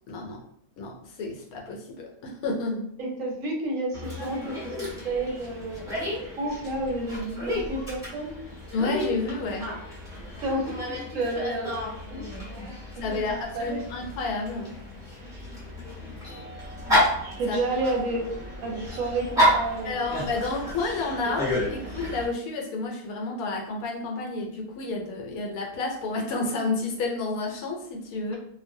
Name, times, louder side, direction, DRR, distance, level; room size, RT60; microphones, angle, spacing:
voice 1, 0.1-0.4 0.8-2.9 8.7-9.7 13.0-14.7 17.5-17.6 19.8-21.4 21.7-28.4, left 3 dB, 80° left, 0 dB, 1.0 m, -30 dB
voice 2, 3.0-4.7 5.0-5.9 6.4-8.4 10.4-10.7 11.1-11.7 12.1-12.8 13.1-13.9 17.4-18.2 18.6-20.1 21.3-21.4, right 2 dB, 70° right, 1 dB, 0.9 m, -30 dB
Dog, 3.9-22.3, equal, 5° right, 0.9 m, -31 dB
2.5 x 2.0 x 2.6 m, 0.68 s
omnidirectional pair, 1.5 m